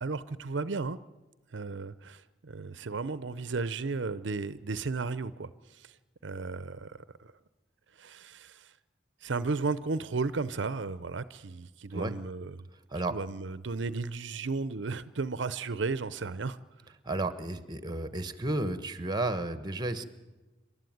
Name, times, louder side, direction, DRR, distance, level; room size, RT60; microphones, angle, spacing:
voice 1, 0.0-1.0 1.5-6.0 6.2-7.3 7.9-8.8 9.2-12.7 13.1-16.6, right 4 dB, 70° right, 16 dB, 0.7 m, -34 dB
voice 2, 17.0-20.0, right 2 dB, 20° right, 12 dB, 1.2 m, -32 dB
27.0 x 12.5 x 9.3 m, 1.1 s
head